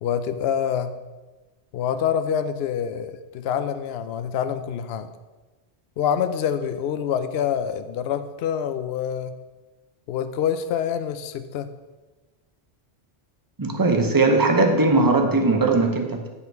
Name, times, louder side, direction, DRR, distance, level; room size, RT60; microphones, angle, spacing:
voice 1, 0.0-1.0 1.7-5.1 6.0-9.3 10.1-11.7, left 8 dB, 65° left, 10 dB, 0.8 m, -26 dB
voice 2, 13.6-16.3, right 3 dB, 20° right, 4 dB, 0.8 m, -19 dB
9.7 x 5.5 x 4.6 m, 1.2 s
omnidirectional pair, 1.2 m